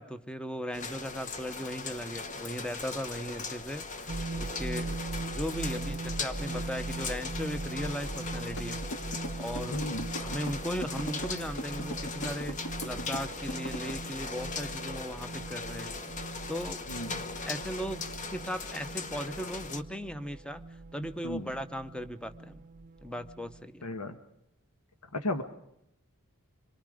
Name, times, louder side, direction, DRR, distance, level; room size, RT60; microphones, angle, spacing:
voice 1, 0.0-9.9 10.2-16.0 16.5-16.9 17.4-20.6 20.9-22.6 23.0-23.9, equal, 5° left, 11 dB, 0.8 m, -38 dB
sound 1, 0.7-19.8, left 4 dB, 35° left, 1.1 m, -39 dB
sound 2, 4.1-23.6, right 2 dB, 35° right, 0.7 m, -40 dB
sound 3, 8.6-13.9, equal, 55° left, 1.8 m, -39 dB
voice 2, 9.7-10.1 16.9-17.2 21.2-21.5 23.8-24.1 25.1-25.4, left 1 dB, 80° left, 8 dB, 1.4 m, -34 dB
26.0 x 23.0 x 5.0 m, 0.78 s
head